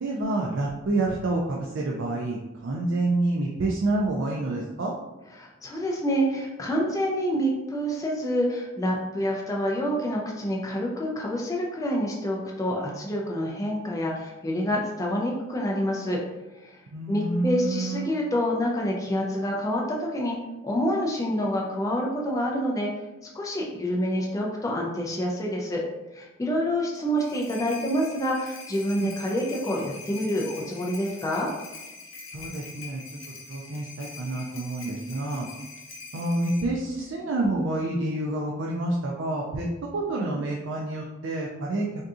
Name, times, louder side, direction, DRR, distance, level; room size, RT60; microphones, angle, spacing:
voice 1, 0.0-4.9 16.9-18.1 29.0-29.1 32.3-33.0 33.5-35.5 36.1-41.9, right 2 dB, 65° right, -2 dB, 0.4 m, -28 dB
voice 2, 5.4-16.2 16.6-16.8 17.1-20.4 20.6-22.9 23.3-25.8 26.1-31.5, equal, 15° left, -2 dB, 0.3 m, -27 dB
sound 1, 26.9-36.6, left 3 dB, 75° left, 0.7 m, -43 dB
3.6 x 2.7 x 2.4 m, 1.1 s
head